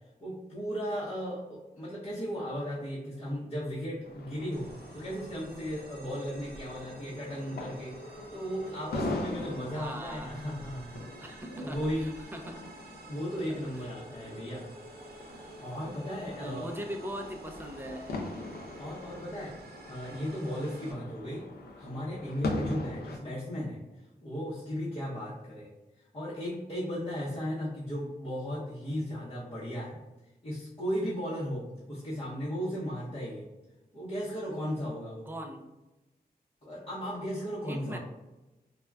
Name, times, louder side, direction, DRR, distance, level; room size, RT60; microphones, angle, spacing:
voice 1, 0.2-8.0 8.3-12.1 13.1-14.6 15.6-16.7 18.8-19.6 19.9-21.5 21.7-23.8 24.2-25.7 26.1-30.0 30.4-33.5 33.9-35.3 36.6-38.0, equal, 35° left, -9 dB, 0.7 m, -36 dB
sound 1, 4.0-23.2, left 2 dB, 80° left, 0.4 m, -41 dB
sound 2, 4.5-20.9, right 2 dB, 75° right, 0.5 m, -50 dB
voice 2, 9.7-10.3 11.2-12.6 13.8-13.9 16.3-18.2 35.3-35.7 37.7-38.0, equal, 15° right, 3 dB, 0.4 m, -40 dB
3.5 x 2.1 x 2.2 m, 1.0 s
wide cardioid pair, 110°, 16 cm